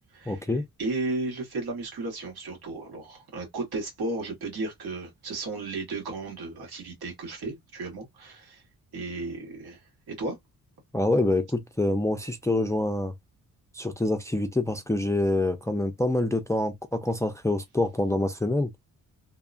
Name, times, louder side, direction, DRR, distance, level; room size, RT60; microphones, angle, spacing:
voice 1, 0.3-0.6 10.9-13.1 13.7-18.7, left 2 dB, 10° left, 0.3 m, -26 dB
voice 2, 0.8-8.6 8.9-9.8 10.1-10.4, right 2 dB, 85° right, 1.5 m, -34 dB
2.8 x 2.2 x 2.5 m
cardioid pair, 115°, 37 cm